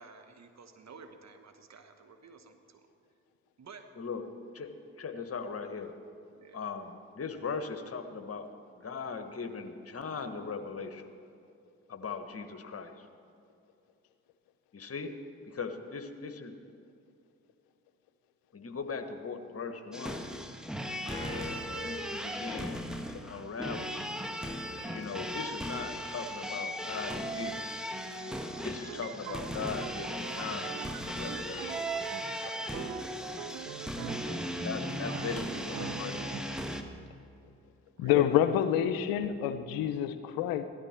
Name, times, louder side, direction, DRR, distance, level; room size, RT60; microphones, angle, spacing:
voice 1, 0.0-2.9 3.6-3.9 6.3-6.6 15.0-15.1 35.1-36.5 38.0-38.5, right 5 dB, 50° right, 7 dB, 1.4 m, -51 dB
voice 2, 5.0-5.9 6.5-8.5 8.7-11.0 11.9-13.1 14.7-15.1 15.5-16.5 18.5-20.2 21.7-24.0 24.9-27.6 28.6-32.8 34.6-36.6, left 5 dB, 40° left, 7 dB, 1.4 m, -39 dB
sound 1, 19.9-36.8, equal, ahead, 1.4 m, -37 dB
sound 2, 21.1-23.0, left 2 dB, 15° left, 2.9 m, -43 dB
sound 3, 28.7-36.4, right 10 dB, 85° right, 0.6 m, -44 dB
voice 3, 38.0-40.6, left 10 dB, 80° left, 11 dB, 0.7 m, -27 dB
16.5 x 12.5 x 4.5 m, 2.6 s
hypercardioid pair, 40°, 35 cm